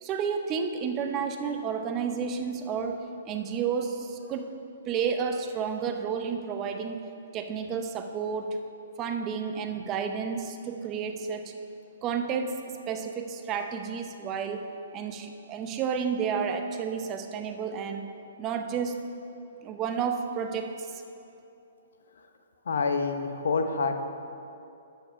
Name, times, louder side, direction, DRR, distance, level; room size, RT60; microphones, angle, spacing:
voice 1, 0.0-4.5 4.9-7.1 7.3-8.6 9.0-11.5 12.0-12.6 12.9-14.7 14.9-18.1 18.4-19.0 19.6-20.9, right 6 dB, 25° right, 6 dB, 0.6 m, -31 dB
voice 2, 22.7-24.0, left 4 dB, 75° left, 7 dB, 0.8 m, -27 dB
11.5 x 4.6 x 5.8 m, 2.7 s
hypercardioid pair, 140°, 0 cm